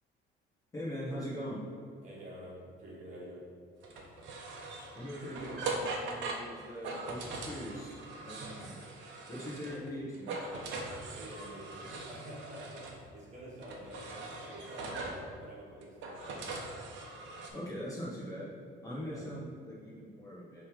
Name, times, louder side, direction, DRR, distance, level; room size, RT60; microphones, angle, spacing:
voice 1, 0.7-1.6 4.9-8.7 9.3-10.3 17.5-18.5 18.8-20.6, equal, 15° left, -7 dB, 1.0 m, -41 dB
voice 2, 2.0-3.5 11.1-16.4 18.9-19.4, equal, 35° right, -5 dB, 1.4 m, -48 dB
sound 1, 3.8-9.9 10.1-13.0 13.6-15.3 15.8-17.5, right 3 dB, 65° right, 0.9 m, -41 dB
6.4 x 3.3 x 5.0 m, 2.2 s
cardioid pair, 180°, 21 cm